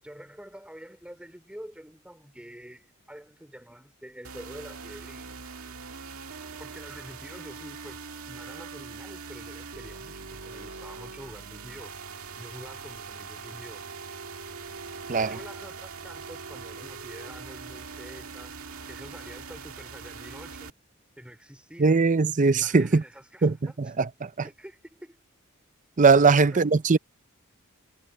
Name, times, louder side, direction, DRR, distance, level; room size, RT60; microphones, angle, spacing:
voice 1, 0.0-5.4 6.6-11.9 12.4-13.8 15.2-18.6 18.9-20.7 21.2-22.0 22.6-23.9 24.4-25.2 26.3-26.6, equal, 5° right, 4.0 m, -46 dB
sound 1, 4.2-20.7, right 5 dB, 70° right, 2.1 m, -42 dB
voice 2, 21.8-23.0 23.4-23.5 24.0-24.3 26.0-27.0, right 4 dB, 35° right, 0.6 m, -20 dB
head